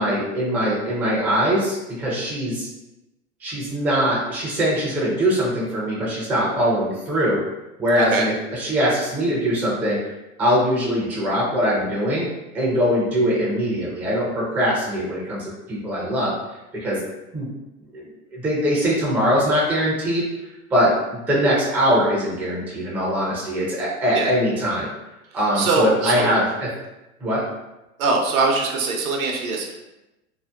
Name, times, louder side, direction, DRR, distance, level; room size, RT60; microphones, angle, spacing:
voice 1, 0.0-2.7 3.4-7.4 7.8-10.0 10.4-12.3 12.5-16.3 16.7-17.0 17.3-17.5 17.9-20.2 20.7-24.9 25.3-26.7 27.2-27.4, equal, 5° right, -6 dB, 0.3 m, -22 dB
voice 2, 25.5-26.3 28.0-29.7, right 3 dB, 70° right, 1 dB, 0.7 m, -22 dB
2.7 x 2.1 x 2.2 m, 0.98 s
hypercardioid pair, 95°, 43 cm